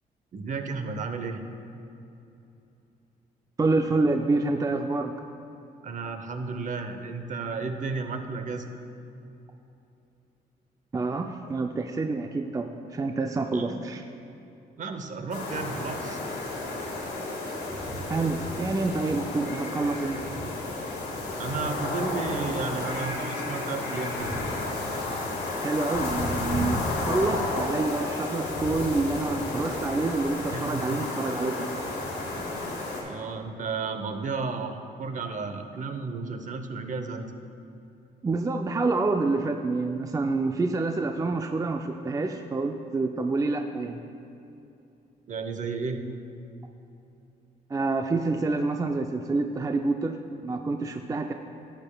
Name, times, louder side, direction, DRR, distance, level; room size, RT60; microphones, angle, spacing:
voice 1, 0.3-1.4 5.8-8.8 13.5-13.8 14.8-16.2 21.4-24.4 30.5-31.1 32.3-32.5 33.0-37.3 45.3-46.1, right 4 dB, 45° right, 7 dB, 0.8 m, -33 dB
voice 2, 3.6-5.1 10.9-14.0 18.1-20.2 25.6-31.7 38.2-44.0 47.7-50.2 50.4-51.3, right 3 dB, 20° right, 5 dB, 0.4 m, -27 dB
sound 1, 15.3-33.0, left 2 dB, 85° left, 1.8 m, -32 dB
11.5 x 8.8 x 2.3 m, 2.8 s
supercardioid pair, 70°, 17 cm